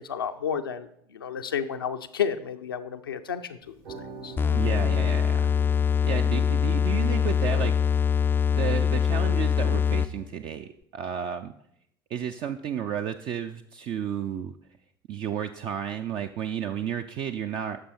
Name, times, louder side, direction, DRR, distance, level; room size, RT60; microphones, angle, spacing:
voice 1, 0.0-3.6 4.2-4.3, left 7 dB, 80° left, 6 dB, 0.6 m, -31 dB
sound 1, 3.6-9.6, right 5 dB, 70° right, 2.3 m, -46 dB
sound 2, 4.4-10.3, left 7 dB, 15° left, 0.4 m, -23 dB
voice 2, 4.5-5.5 6.0-7.7 8.5-11.5 12.1-14.5 15.1-17.8, right 9 dB, 45° right, 6 dB, 0.5 m, -32 dB
11.0 x 6.8 x 4.5 m, 0.71 s
figure-of-eight pair, 65°, 12 cm